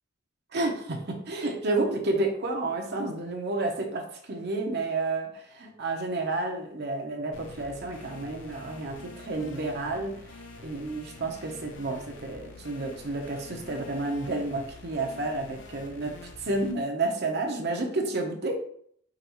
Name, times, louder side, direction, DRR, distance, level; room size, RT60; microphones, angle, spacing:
voice 1, 0.5-18.6, right 2 dB, 60° right, 2 dB, 0.9 m, -31 dB
sound 1, 7.3-16.7, left 2 dB, 80° left, 0.7 m, -47 dB
5.2 x 3.1 x 3.0 m, 0.64 s
head